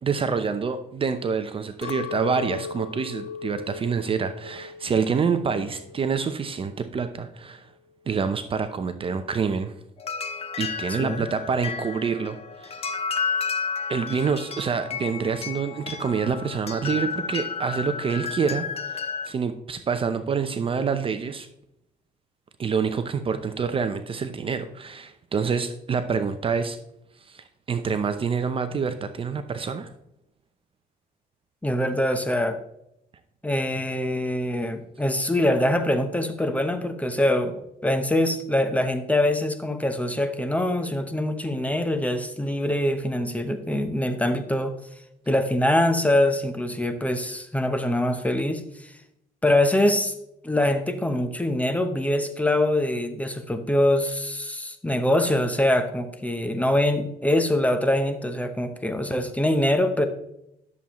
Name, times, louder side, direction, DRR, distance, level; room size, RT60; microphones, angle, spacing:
voice 1, 0.0-7.7 8.1-9.7 10.6-12.8 13.9-18.7 19.2-21.5 22.6-26.8 27.3-29.9, right 5 dB, 30° right, 9 dB, 0.6 m, -27 dB
Chink clink, 1.8-6.2 6.6-7.2, left 6 dB, 85° left, 0.4 m, -38 dB
sound 1, 10.0-19.3, left 6 dB, 35° left, 0.9 m, -32 dB
voice 2, 10.9-11.3 31.6-32.6 33.4-44.7 45.3-48.9 49.4-50.1 50.4-60.1, left 1 dB, 10° left, 8 dB, 0.9 m, -24 dB
11.0 x 7.2 x 3.1 m, 0.80 s
cardioid pair, 110°, 17 cm